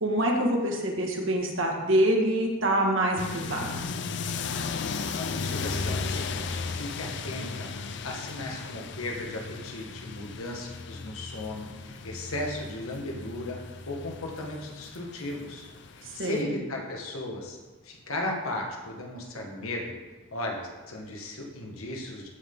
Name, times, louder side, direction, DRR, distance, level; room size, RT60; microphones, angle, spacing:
voice 1, 0.0-3.8 16.2-16.5, right 1 dB, 65° right, 0 dB, 1.9 m, -25 dB
sound 1, 3.2-16.4, left 4 dB, 55° left, 0.5 m, -36 dB
voice 2, 5.1-13.6 13.9-15.7 15.9-17.6 17.8-19.9 20.3-22.3, left 1 dB, 85° left, 0 dB, 1.6 m, -36 dB
15.0 x 5.8 x 3.9 m, 1.2 s
head